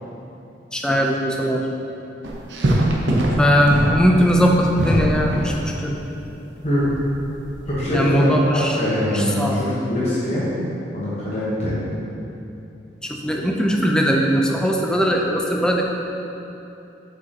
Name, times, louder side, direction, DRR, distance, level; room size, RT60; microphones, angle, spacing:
voice 1, 0.7-1.6 3.4-6.0 7.9-8.8 9.1-9.6 13.0-15.8, equal, 5° left, 0 dB, 0.5 m, -19 dB
sound 1, 2.2-5.6 6.8-7.7, right 1 dB, 70° right, 0.8 m, -22 dB
voice 2, 7.7-8.2 8.5-10.5 10.9-11.8, left 1 dB, 35° left, -10 dB, 1.1 m, -23 dB
7.8 x 5.2 x 2.9 m, 2.8 s
head